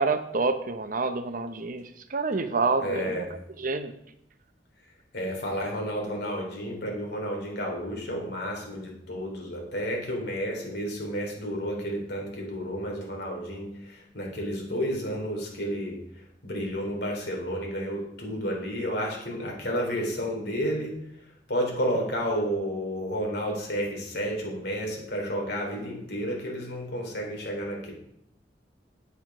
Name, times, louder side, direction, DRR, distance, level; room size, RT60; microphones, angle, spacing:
voice 1, 0.0-3.9, right 3 dB, 50° right, 9 dB, 0.8 m, -28 dB
voice 2, 2.8-3.2 5.1-13.7 14.1-16.0 16.4-21.0 21.5-27.9, equal, 65° left, 0 dB, 3.6 m, -31 dB
9.5 x 8.2 x 6.1 m, 0.76 s
head